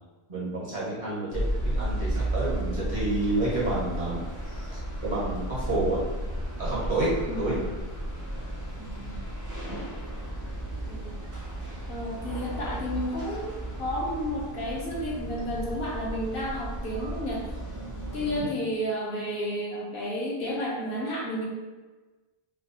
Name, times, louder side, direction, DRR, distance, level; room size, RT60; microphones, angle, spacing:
voice 1, 0.3-4.2 4.6-6.0 6.6-7.1 7.4-7.5 9.7-9.8 18.2-18.5, right 2 dB, 45° right, -8 dB, 1.4 m, -30 dB
sound 1, 1.3-18.4, right 1 dB, 25° right, 0.5 m, -34 dB
voice 2, 7.3-7.7 8.8-9.2 10.9-11.2 11.9-17.6 18.1-21.5, equal, 60° left, -4 dB, 1.1 m, -32 dB
3.0 x 2.3 x 4.1 m, 1.2 s
omnidirectional pair, 1.1 m